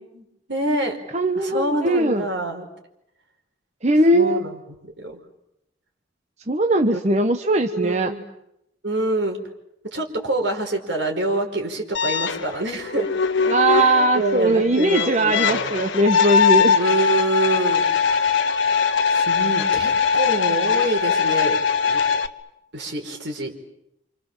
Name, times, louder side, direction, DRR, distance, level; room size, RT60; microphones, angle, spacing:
voice 1, 0.1-1.0 1.4-2.7 4.1-4.6 5.0-5.2 6.9-7.0 7.6-8.2 8.8-9.4 9.8-13.1 14.2-15.7 16.7-18.4 19.1-22.0 22.7-23.5, right 2 dB, 70° right, 3 dB, 5.0 m, -26 dB
voice 2, 1.1-2.2 3.8-4.4 6.5-8.1 13.5-16.8, right 1 dB, 35° right, 6 dB, 1.2 m, -19 dB
sound 1, 11.9-22.3, left 6 dB, 80° left, 1.3 m, -21 dB
29.5 x 27.5 x 7.4 m, 0.82 s
head